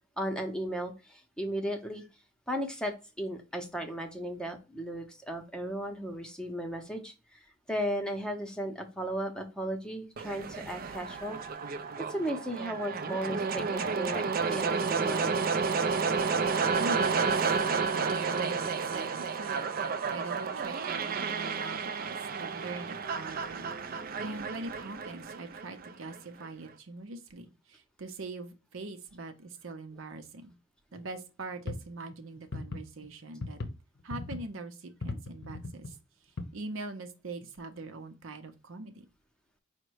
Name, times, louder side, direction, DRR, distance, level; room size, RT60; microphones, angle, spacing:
voice 1, 0.2-2.0 2.5-7.4 7.7-11.4 12.1-14.2 14.5-15.3, equal, 5° left, 0.7 m, -35 dB
sound 1, 10.2-26.2, right 5 dB, 45° right, 0.4 m, -31 dB
voice 2, 16.8-19.7 20.1-30.5 30.9-33.6 34.0-36.0 36.5-39.0, right 3 dB, 80° right, 0.7 m, -42 dB
sound 2, 31.6-33.1 33.4-33.7 34.0-34.6 35.0-35.9 36.4-36.5 37.4-37.5, left 3 dB, 60° left, 0.7 m, -37 dB
5.1 x 2.2 x 4.6 m
head